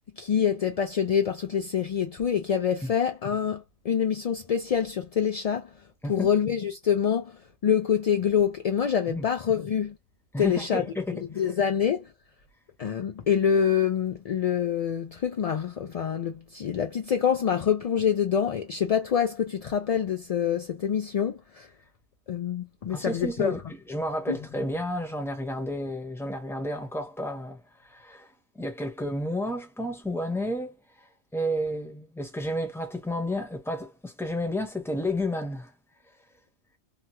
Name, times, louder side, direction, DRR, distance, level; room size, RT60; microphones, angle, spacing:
voice 1, 0.2-5.7 6.1-10.0 10.4-10.9 11.1-12.1 12.8-21.7 22.3-23.6 24.3-24.4, left 8 dB, 60° left, 0.3 m, -26 dB
voice 2, 10.3-11.0 11.3-11.4 22.9-23.6 23.9-27.6 27.8-28.3 28.5-30.7 31.3-35.7, left 1 dB, 5° left, 0.8 m, -31 dB
2.9 x 2.2 x 2.8 m
omnidirectional pair, 1.1 m